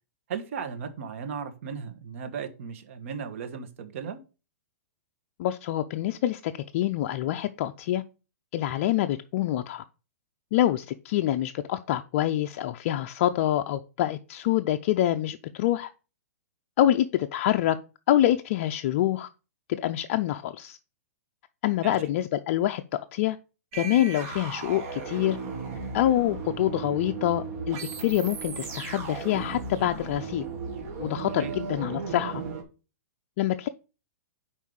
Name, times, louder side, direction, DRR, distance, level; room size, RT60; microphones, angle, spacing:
voice 1, 0.3-4.2 21.8-22.0 31.4-31.5, right 6 dB, 55° right, 1.3 m, -36 dB
voice 2, 5.4-8.0 8.5-9.8 10.5-15.9 16.8-17.8 18.1-19.3 19.7-20.8 21.6-22.8 23.1-23.4 23.7-25.4 25.9-30.4 31.0-32.4 33.4-33.7, left 13 dB, 45° left, 0.5 m, -26 dB
sound 1, 23.7-32.6, right 5 dB, 35° right, 1.9 m, -36 dB
5.5 x 4.6 x 6.3 m
hypercardioid pair, 145°, 8 cm